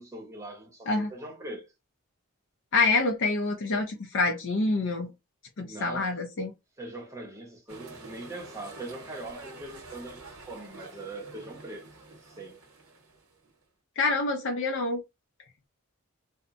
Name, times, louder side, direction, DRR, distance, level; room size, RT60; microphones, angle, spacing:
voice 1, 0.0-1.7 5.6-6.2 6.8-11.9 12.2-12.6, right 2 dB, 15° right, 0.7 m, -41 dB
voice 2, 2.7-5.1 5.6-6.5 14.0-15.0, left 3 dB, 55° left, 0.4 m, -26 dB
sound 1, 7.7-13.6, right 3 dB, 85° right, 0.9 m, -47 dB
2.8 x 2.1 x 2.5 m
head